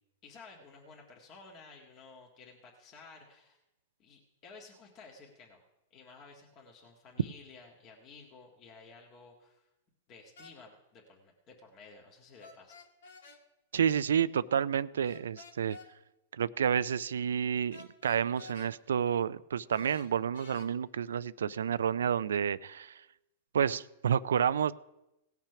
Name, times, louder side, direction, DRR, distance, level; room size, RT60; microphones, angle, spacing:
voice 1, 0.2-3.6 4.0-5.6 5.9-9.7 10.1-12.8, left 4 dB, 35° left, -1 dB, 1.7 m, -54 dB
sound 1, 10.4-10.6 12.4-13.4 15.0-15.9 17.7-18.7 19.7-20.7, left 4 dB, 85° left, 1.7 m, -52 dB
voice 2, 13.7-15.8 16.3-22.9 23.5-24.7, right 8 dB, 85° right, 16 dB, 0.3 m, -30 dB
17.5 x 5.9 x 5.8 m, 0.94 s
hypercardioid pair, 125°, 0 cm